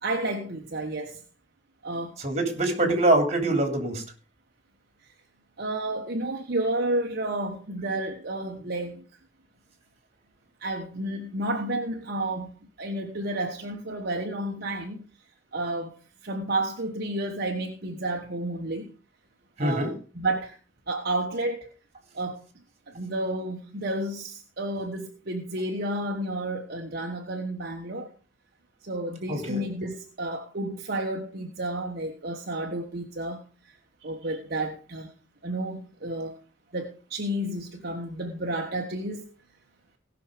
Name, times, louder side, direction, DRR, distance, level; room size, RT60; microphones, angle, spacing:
voice 1, 0.0-1.2 1.8-2.2 2.8-3.0 5.6-9.0 10.6-15.0 15.5-16.0 16.2-18.9 19.6-20.6 20.9-21.7 22.1-22.4 22.9-28.1 28.8-33.8 34.0-35.1 35.4-36.4 36.7-39.3, right 1 dB, 55° right, 1.4 m, -31 dB
voice 2, 2.2-4.0 19.6-19.9 29.3-29.6, right 2 dB, 35° right, 3.3 m, -24 dB
18.5 x 6.3 x 5.1 m
head